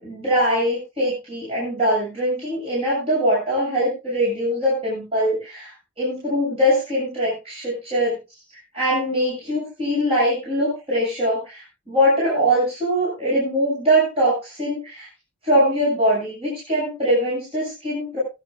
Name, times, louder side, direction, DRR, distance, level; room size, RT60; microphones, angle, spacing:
voice 1, 0.0-8.1 8.7-15.1 15.4-18.2, equal, 30° right, -6 dB, 8.0 m, -22 dB
22.0 x 11.5 x 2.4 m, 0.28 s
head